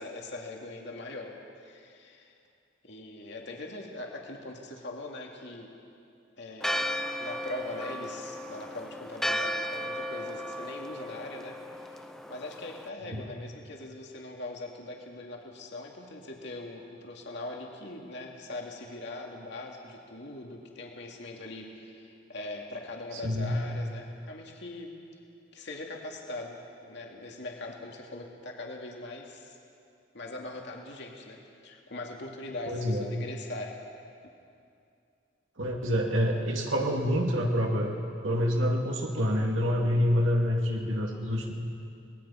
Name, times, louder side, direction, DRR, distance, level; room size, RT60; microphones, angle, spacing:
voice 1, 0.0-2.3 2.8-5.7 6.4-24.9 25.5-29.5 30.1-33.8 34.2-34.3, left 2 dB, 60° left, 0 dB, 2.4 m, -41 dB
Church bell, 6.6-12.9, equal, 5° left, 0.7 m, -35 dB
voice 2, 23.2-23.6 32.7-33.0 35.6-37.9 38.2-41.5, equal, 80° right, 0 dB, 2.2 m, -27 dB
24.5 x 20.0 x 5.7 m, 2.5 s
head